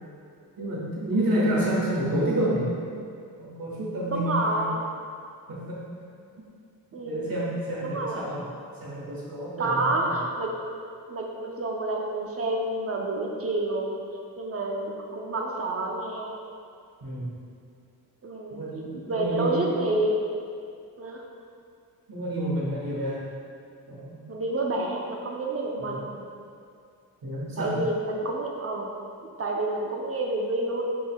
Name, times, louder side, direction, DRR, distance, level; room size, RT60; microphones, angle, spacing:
voice 1, 0.6-2.7 3.4-4.7 5.5-5.8 7.0-8.5 8.8-10.1 17.0-17.4 18.5-19.7 22.1-23.3 23.9-24.2 25.8-26.0 27.2-27.8, right 1 dB, 65° right, -7 dB, 1.4 m, -29 dB
voice 2, 4.1-4.8 6.9-7.3 7.8-8.2 9.6-10.5 11.1-13.9 14.4-16.3 18.2-18.7 19.1-20.3 21.0-21.2 24.3-26.2 27.6-28.9 29.4-30.8, right 2 dB, 40° right, 0 dB, 0.6 m, -29 dB
5.0 x 3.8 x 2.3 m, 2.4 s
cardioid pair, 70°, 37 cm